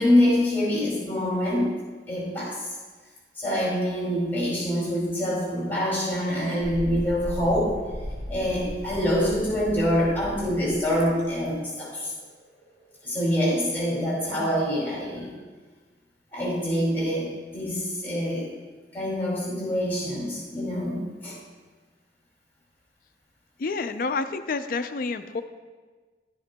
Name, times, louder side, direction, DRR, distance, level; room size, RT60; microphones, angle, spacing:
voice 1, 0.0-1.8 2.1-2.6 3.4-7.8 8.3-12.1 13.0-15.3 16.3-18.5 18.9-21.4, equal, 10° left, -6 dB, 2.6 m, -25 dB
Thunderstorm, 6.6-14.0, equal, 70° right, 3.0 m, -38 dB
voice 2, 23.6-25.4, left 4 dB, 50° left, 9 dB, 0.4 m, -29 dB
11.5 x 10.0 x 2.2 m, 1.4 s
head